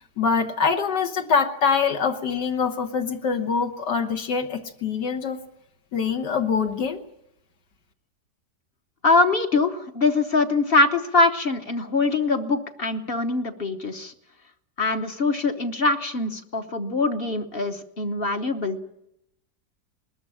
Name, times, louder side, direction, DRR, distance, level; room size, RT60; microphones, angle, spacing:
voice 1, 0.2-5.4 5.9-7.0, left 5 dB, 75° left, 4 dB, 1.9 m, -24 dB
voice 2, 9.0-14.1 14.8-18.8, left 3 dB, 40° left, 6 dB, 1.1 m, -23 dB
20.5 x 13.0 x 9.9 m, 0.83 s
omnidirectional pair, 1.8 m